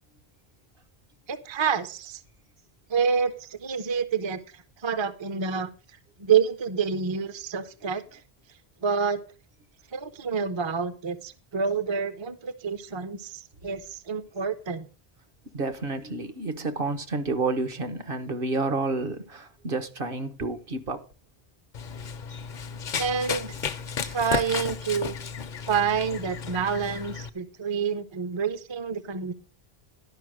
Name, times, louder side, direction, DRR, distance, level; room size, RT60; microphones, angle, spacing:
voice 1, 1.3-2.2 2.9-5.7 6.2-8.2 8.8-9.2 9.9-14.9 23.0-23.6 24.0-25.2 25.7-29.3, right 6 dB, 30° right, 0.6 m, -28 dB
voice 2, 15.5-21.0, right 3 dB, 65° right, 1.2 m, -30 dB
Run, 21.7-27.3, left 6 dB, 55° left, 0.7 m, -33 dB
11.5 x 5.4 x 6.2 m
omnidirectional pair, 1.0 m